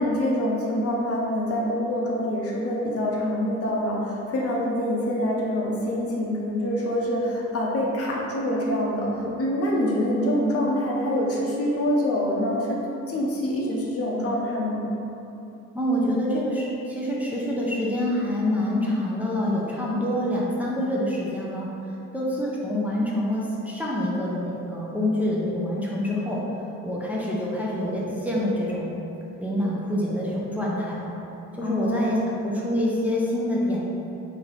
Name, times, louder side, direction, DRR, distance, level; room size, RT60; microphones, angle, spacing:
voice 1, 0.0-12.8 13.1-14.8 31.6-32.3, equal, 50° left, -2 dB, 0.7 m, -25 dB
voice 2, 15.7-21.7 22.1-26.4 26.8-29.0 29.4-31.1 31.5-33.9, left 1 dB, 5° right, -6 dB, 0.6 m, -26 dB
3.3 x 2.9 x 4.0 m, 2.9 s
cardioid pair, 90°, 30 cm